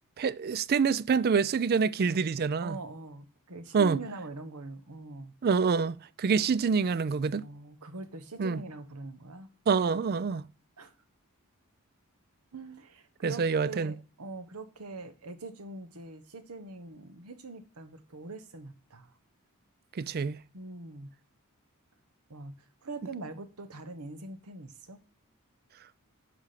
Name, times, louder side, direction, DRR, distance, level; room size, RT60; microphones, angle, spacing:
voice 1, 0.2-2.8 3.7-4.0 5.4-7.4 8.4-8.6 9.7-10.4 13.2-13.9 20.0-20.4, right 5 dB, 45° right, 0.4 m, -26 dB
voice 2, 2.6-5.3 7.3-9.5 10.3-10.4 10.8-10.9 12.5-19.1 20.5-21.1 22.3-25.0, right 3 dB, 85° right, 1.2 m, -43 dB
10.5 x 5.0 x 5.8 m
head